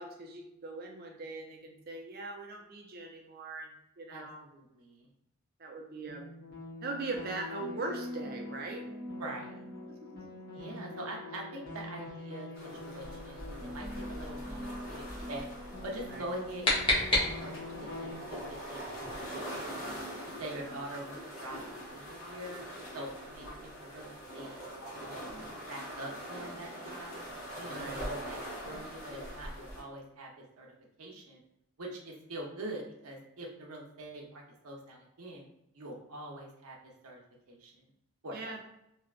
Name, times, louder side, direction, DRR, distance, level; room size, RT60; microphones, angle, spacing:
voice 1, 0.0-4.4 5.6-6.3 6.8-8.9 9.9-10.4 16.1-16.2 20.5-20.8 27.7-28.1 38.3-38.6, right 3 dB, 45° right, 2 dB, 0.5 m, -41 dB
voice 2, 4.1-5.1 9.2-9.6 10.5-15.5 15.8-18.8 19.2-19.9 20.3-22.6 22.9-24.6 24.9-25.2 25.7-27.2 27.5-30.7 31.0-31.4 31.8-35.5 35.7-36.8 37.0-37.2 37.5-37.9 38.2-38.5, right 1 dB, 90° right, -1 dB, 0.7 m, -44 dB
sound 1, 6.1-18.1, left 2 dB, 45° left, 1.0 m, -44 dB
sound 2, 12.5-29.8, equal, 75° left, 1.3 m, -43 dB
sound 3, 16.1-17.8, left 2 dB, 25° left, 0.8 m, -30 dB
3.3 x 2.8 x 2.4 m, 0.83 s
head